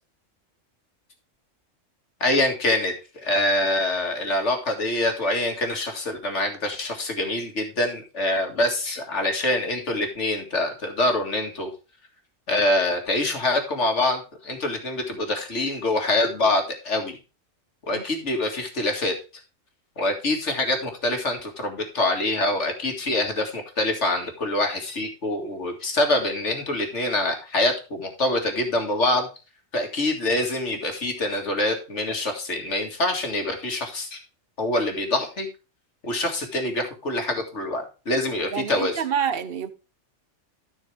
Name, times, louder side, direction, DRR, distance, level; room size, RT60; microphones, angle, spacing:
voice 1, 2.2-11.7 12.5-17.2 17.9-19.1 20.0-29.3 29.7-34.2 34.6-35.5 36.0-39.0, left 1 dB, 65° left, 2.4 m, -25 dB
voice 2, 38.5-39.7, right 8 dB, 50° right, 1.1 m, -27 dB
13.0 x 6.3 x 3.4 m
omnidirectional pair, 1.3 m